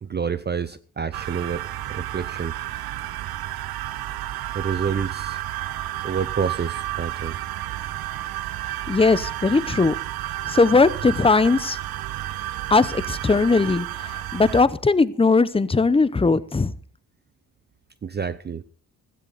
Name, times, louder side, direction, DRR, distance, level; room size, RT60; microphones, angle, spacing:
voice 1, 0.0-2.6 4.5-5.4 6.0-7.4 18.0-18.6, right 6 dB, 30° right, 0.6 m, -28 dB
sound 1, 1.1-14.6, right 14 dB, 80° right, 0.7 m, -31 dB
voice 2, 8.9-9.9 10.5-11.8 12.7-16.7, left 3 dB, 15° left, 0.7 m, -19 dB
16.0 x 14.0 x 4.0 m
cardioid pair, 105°, 37 cm